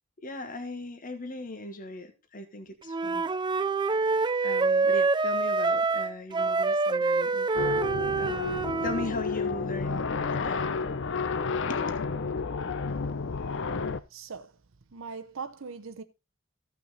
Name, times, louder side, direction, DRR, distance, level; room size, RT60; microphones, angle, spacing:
voice 1, 0.2-3.2 4.4-7.5 8.2-10.0 10.3-10.7 11.7-11.8, left 2 dB, 40° left, 1.3 m, -38 dB
Wind instrument woodwind instrument, 2.9-9.1, right 4 dB, 20° right, 0.4 m, -26 dB
sound 1, 7.5-14.0, left 5 dB, 60° left, 0.6 m, -31 dB
voice 2, 14.1-14.5 14.9-16.0, right 5 dB, 70° right, 0.7 m, -40 dB
14.5 x 5.7 x 4.0 m
head